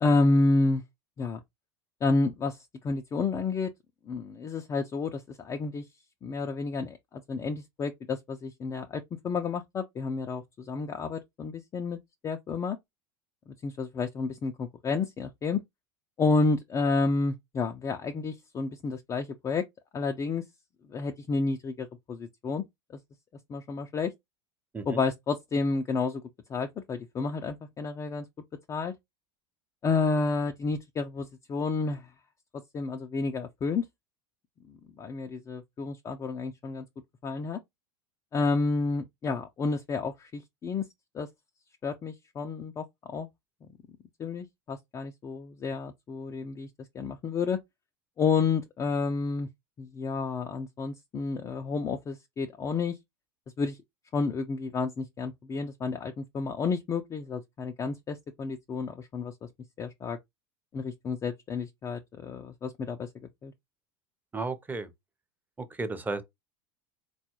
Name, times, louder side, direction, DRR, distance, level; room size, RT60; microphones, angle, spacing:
voice 1, 0.0-0.8 1.2-1.4 2.0-3.7 4.1-5.9 6.2-7.0 7.3-12.0 12.2-12.8 13.6-15.6 16.2-19.6 19.9-20.4 20.9-22.6 23.5-24.1 24.9-26.2 26.5-28.3 28.7-28.9 29.8-32.1 32.7-33.8 34.7-36.9 37.2-37.6 38.3-40.8 41.1-41.3 41.8-43.3 44.2-46.7 46.9-47.6 48.2-49.5 49.8-53.0 53.6-53.8 54.1-59.3 59.8-60.2 60.7-63.1 63.4-63.5, left 4 dB, 25° left, 0.4 m, -30 dB
voice 2, 64.3-64.9 65.6-66.2, right 3 dB, 15° right, 0.7 m, -33 dB
3.9 x 2.3 x 3.0 m
hypercardioid pair, 85°, 13 cm